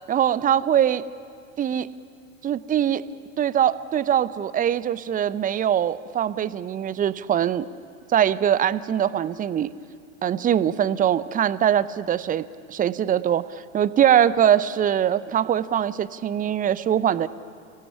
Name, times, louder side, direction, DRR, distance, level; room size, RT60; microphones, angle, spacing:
voice 1, 0.1-1.0 1.6-1.9 2.4-3.0 3.4-7.7 8.1-9.7 10.2-13.4 13.7-17.3, right 10 dB, 20° right, 16 dB, 0.8 m, -22 dB
28.0 x 18.5 x 10.0 m, 2.3 s
figure-of-eight pair, 85°, 42 cm